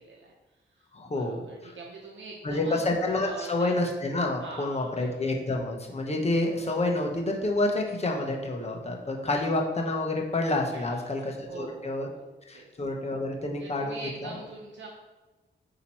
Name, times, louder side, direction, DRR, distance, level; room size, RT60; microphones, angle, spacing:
voice 1, 0.0-2.8 3.2-3.7 4.4-5.3 10.7-12.3 12.5-12.7 13.6-14.9, right 3 dB, 75° right, -2 dB, 0.8 m, -44 dB
voice 2, 0.9-1.4 2.4-12.1 12.5-14.3, left 2 dB, 35° left, 1 dB, 0.9 m, -28 dB
8.6 x 2.9 x 4.3 m, 1.1 s
wide cardioid pair, 165°, 19 cm